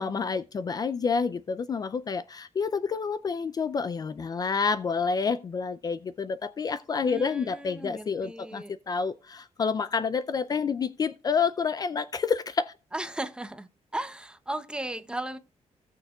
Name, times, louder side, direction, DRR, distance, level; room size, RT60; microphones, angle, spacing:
voice 1, 0.0-12.7, left 5 dB, 30° left, 0.4 m, -29 dB
voice 2, 7.0-8.7 12.9-15.4, right 1 dB, 5° right, 0.7 m, -36 dB
17.0 x 6.5 x 2.3 m
wide cardioid pair, 155°, 12 cm